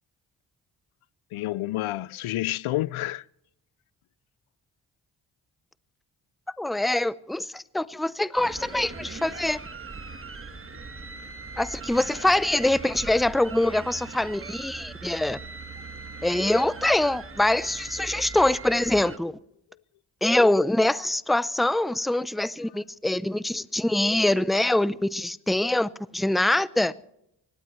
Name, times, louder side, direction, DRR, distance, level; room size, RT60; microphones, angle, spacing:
voice 1, 1.3-3.3 10.7-10.8, left 16 dB, 85° left, 0.5 m, -29 dB
voice 2, 6.6-9.6 11.6-15.4 16.2-19.3 20.2-26.9, left 1 dB, ahead, 0.6 m, -24 dB
sound 1, 8.4-19.2, right 4 dB, 25° right, 1.4 m, -40 dB
24.5 x 18.5 x 3.2 m
cardioid pair, 55°, 48 cm